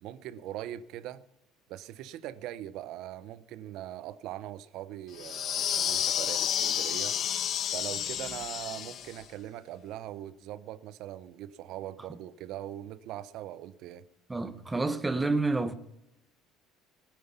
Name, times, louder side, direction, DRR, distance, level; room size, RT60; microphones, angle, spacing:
voice 1, 0.0-1.2 1.7-7.2 7.7-14.0, right 12 dB, 55° right, 0.8 m, -41 dB
sound 1, 5.2-9.2, left 9 dB, 35° left, 0.6 m, -31 dB
voice 2, 14.3-15.7, right 3 dB, 10° right, 0.8 m, -29 dB
18.0 x 9.3 x 5.7 m
cardioid pair, 170°, 0 cm